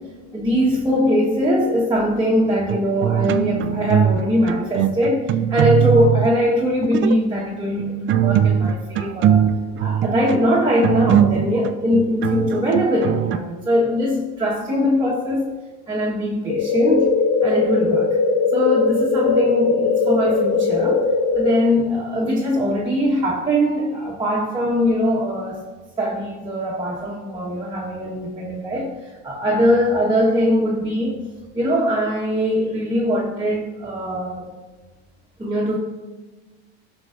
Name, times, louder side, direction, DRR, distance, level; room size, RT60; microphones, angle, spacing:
voice 1, 0.3-9.5 9.8-15.5 15.9-17.1 17.4-18.1 18.5-21.1 21.3-25.7 26.0-31.2 31.5-34.5 35.4-35.8, equal, 15° right, -4 dB, 1.3 m, -21 dB
sound 1, 2.7-4.2 4.5-6.3 6.8-7.2 7.8-13.4, right 9 dB, 35° right, 0.4 m, -20 dB
sound 2, 16.5-21.5, left 4 dB, 50° left, 0.8 m, -19 dB
13.5 x 6.1 x 2.5 m, 1.3 s
supercardioid pair, 110°, 34 cm